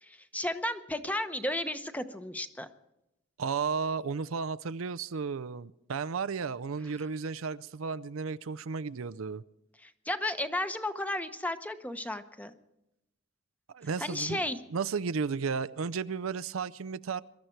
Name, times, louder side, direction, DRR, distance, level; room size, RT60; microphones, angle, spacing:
voice 1, 0.0-2.7 9.8-12.5 14.0-14.6, left 1 dB, 10° left, 9 dB, 0.9 m, -33 dB
voice 2, 3.4-9.4 13.7-14.4 14.7-17.2, right 5 dB, 90° right, 15 dB, 0.5 m, -33 dB
22.5 x 13.0 x 4.6 m, 0.88 s
head